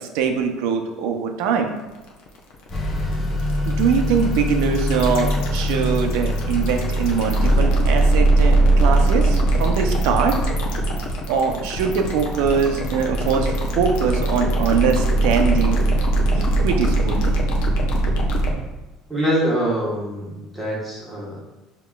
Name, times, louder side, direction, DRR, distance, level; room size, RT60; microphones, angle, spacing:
voice 1, 0.0-1.7 3.6-10.4 11.3-15.8 16.3-17.4, right 6 dB, 75° right, 5 dB, 0.6 m, -22 dB
sound 1, 1.9-18.5, right 2 dB, 70° left, 0.7 m, -20 dB
Motor vehicle (road) / Accelerating revving vroom, 2.7-7.7, left 1 dB, 20° left, 0.6 m, -24 dB
voice 2, 19.1-21.4, equal, 5° right, -6 dB, 1.2 m, -24 dB
6.4 x 2.9 x 2.3 m, 1.1 s
cardioid pair, 155°, 0 cm